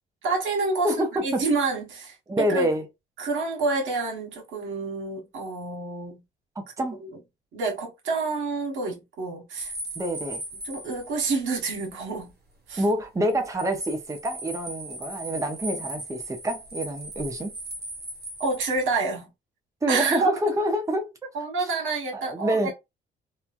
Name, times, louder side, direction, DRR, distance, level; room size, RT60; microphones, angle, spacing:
voice 1, 0.2-2.7 3.2-6.2 7.0-7.2 7.5-9.7 10.6-12.3 12.7-12.8 18.4-19.3 19.9-20.5 21.3-22.7, right 3 dB, 75° right, 1.3 m, -28 dB
voice 2, 0.8-1.4 2.3-2.9 6.6-7.0 10.0-10.4 12.8-17.5 19.8-21.3 22.1-22.7, right 1 dB, 15° right, 0.7 m, -27 dB
sound 1, 9.6-11.9 12.2-12.3 13.3-19.0, right 1 dB, 50° right, 1.4 m, -38 dB
3.0 x 2.2 x 2.4 m
cardioid pair, 90°, 20 cm